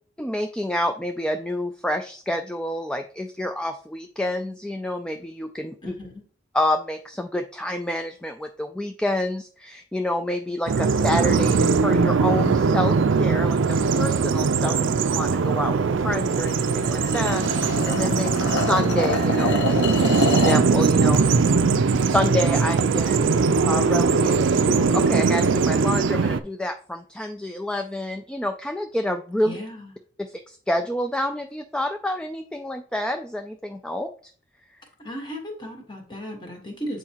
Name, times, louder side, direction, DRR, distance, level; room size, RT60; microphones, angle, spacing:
voice 1, 0.2-5.9 6.5-21.2 22.1-29.5 30.2-34.1, left 1 dB, 5° left, 5 dB, 0.3 m, -28 dB
voice 2, 5.8-6.2 21.3-21.9 29.4-29.9 35.0-37.0, equal, 25° left, 2 dB, 1.5 m, -36 dB
Bird vocalization bird call bird song, 10.7-26.4, right 4 dB, 80° right, 0.5 m, -20 dB
sound 1, 16.3-20.7, left 4 dB, 65° left, 0.8 m, -27 dB
8.1 x 4.7 x 2.9 m, 0.43 s
head